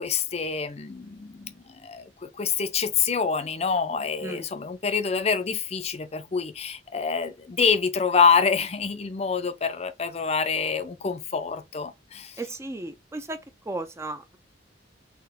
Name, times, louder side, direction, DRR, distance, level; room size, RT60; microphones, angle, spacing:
voice 1, 0.0-2.1 2.4-12.4, left 5 dB, 35° left, 0.5 m, -26 dB
voice 2, 12.4-13.4 13.7-14.4, right 2 dB, 15° right, 0.4 m, -34 dB
4.2 x 2.9 x 4.1 m
head